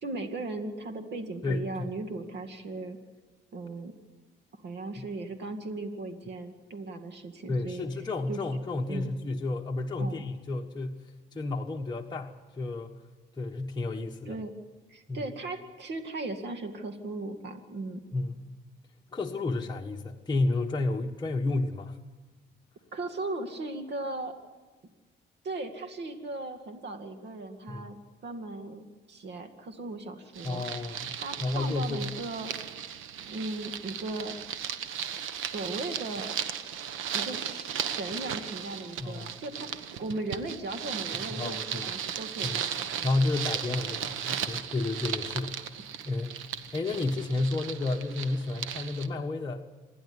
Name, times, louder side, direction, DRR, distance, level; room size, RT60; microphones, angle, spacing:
voice 1, 0.0-3.0 3.5-3.9 4.6-7.8 8.3-8.4 8.9-9.1 10.0-10.3 14.3-14.5 14.9-18.0 22.9-24.3 25.4-28.0 28.2-30.6 31.2-32.5 33.3-34.4 35.4-36.3 37.1-43.2, right 2 dB, 60° right, 7 dB, 2.2 m, -37 dB
voice 2, 1.4-1.9 5.0-5.1 7.5-12.9 13.4-14.4 15.1-15.2 18.1-18.4 19.1-22.0 27.7-27.9 30.4-31.1 31.4-32.1 39.0-39.3 41.4-41.9 42.4-42.6 43.0-45.6 46.0-46.4 46.7-49.7, left 2 dB, 20° left, 0 dB, 1.3 m, -31 dB
sound 1, 30.3-49.1, right 8 dB, 85° right, 1.2 m, -36 dB
27.0 x 11.0 x 9.8 m, 1.3 s
cardioid pair, 90°, 20 cm